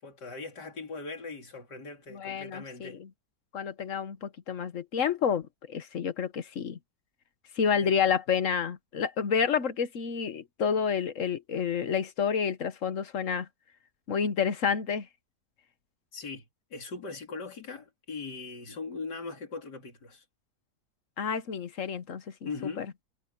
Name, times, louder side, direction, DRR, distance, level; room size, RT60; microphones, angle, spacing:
voice 1, 0.0-3.0 7.7-7.9 16.1-16.4 16.7-20.2 22.4-22.9, left 4 dB, 85° left, 3.7 m, -40 dB
voice 2, 2.1-3.1 3.5-6.8 7.5-13.5 14.1-15.1 21.2-22.5 22.8-22.9, left 7 dB, 55° left, 1.4 m, -29 dB
omnidirectional pair, 1.8 m